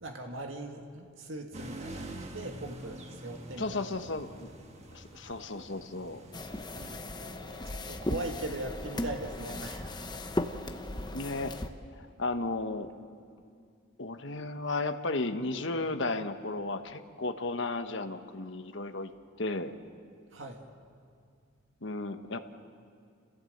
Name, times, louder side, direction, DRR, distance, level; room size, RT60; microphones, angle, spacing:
voice 1, 0.0-3.8 6.7-9.9 20.3-20.6, right 2 dB, 70° right, 3 dB, 2.0 m, -40 dB
sound 1, 1.5-7.0, right 1 dB, 30° right, 1.5 m, -46 dB
voice 2, 3.6-4.5 4.9-6.2 11.0-11.5 12.0-12.9 14.0-19.1 19.4-19.8 21.8-22.4, left 2 dB, 60° left, 8 dB, 1.2 m, -34 dB
sound 2, 6.3-11.7, left 1 dB, 20° left, 0.9 m, -37 dB
29.5 x 16.5 x 7.9 m, 2.3 s
head